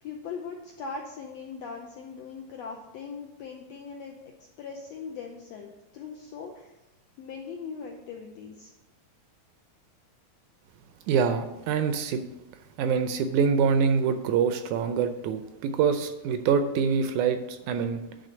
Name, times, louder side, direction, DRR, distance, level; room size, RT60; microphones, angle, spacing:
voice 1, 0.0-4.2 4.6-6.7 7.2-8.7, left 5 dB, 85° left, 2 dB, 1.5 m, -40 dB
voice 2, 11.1-12.2 12.8-18.0, right 6 dB, 80° right, 9 dB, 1.7 m, -25 dB
10.0 x 3.8 x 6.6 m, 0.95 s
omnidirectional pair, 3.9 m